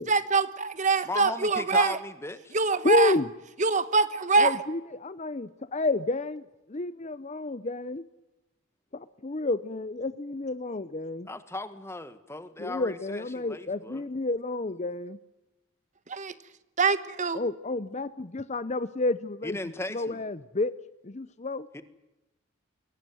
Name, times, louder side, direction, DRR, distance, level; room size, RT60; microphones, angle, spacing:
voice 1, 0.1-2.0 2.5-3.1 3.6-4.5 16.1-16.3 16.8-17.4, right 4 dB, 35° right, 13 dB, 1.2 m, -24 dB
voice 2, 1.0-2.6 11.3-14.0 19.4-20.2 21.7-21.8, left 2 dB, 15° left, 11 dB, 1.6 m, -36 dB
voice 3, 2.8-3.3 4.4-6.4 6.7-8.0 8.9-11.3 12.6-15.2 17.3-19.6 19.9-20.7 21.0-21.7, left 2 dB, 35° left, 15 dB, 0.7 m, -30 dB
22.5 x 18.0 x 9.2 m, 1.0 s
head